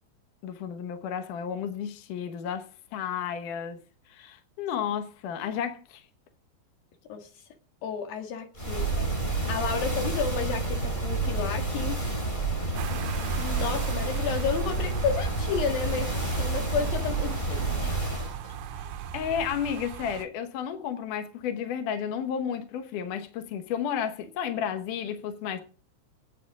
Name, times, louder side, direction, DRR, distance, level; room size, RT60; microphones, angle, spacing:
voice 1, 0.4-3.8 4.1-6.0 19.1-25.6, left 8 dB, 75° left, 1.9 m, -32 dB
voice 2, 7.8-12.0 13.4-16.1 16.4-18.0 18.4-18.5, left 6 dB, 60° left, 3.2 m, -32 dB
sound 1, 8.6-18.4, right 2 dB, 10° left, 3.0 m, -29 dB
sound 2, 12.7-20.3, right 9 dB, 80° right, 3.2 m, -41 dB
23.5 x 8.9 x 3.6 m
omnidirectional pair, 5.4 m